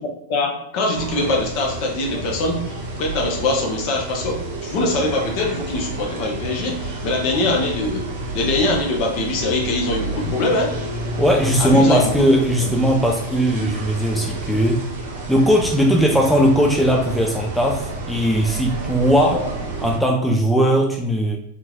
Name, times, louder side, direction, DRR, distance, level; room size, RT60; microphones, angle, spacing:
voice 1, 0.3-8.1 8.3-10.7 11.6-12.3 19.3-19.5, left 2 dB, 45° left, 1 dB, 0.8 m, -23 dB
sound 1, 0.9-20.0, right 2 dB, 55° right, 0.7 m, -30 dB
voice 2, 11.2-14.9 15.3-19.5 19.8-21.4, equal, ahead, 0 dB, 0.4 m, -18 dB
3.6 x 2.9 x 2.4 m, 0.79 s
figure-of-eight pair, 90°, 0 cm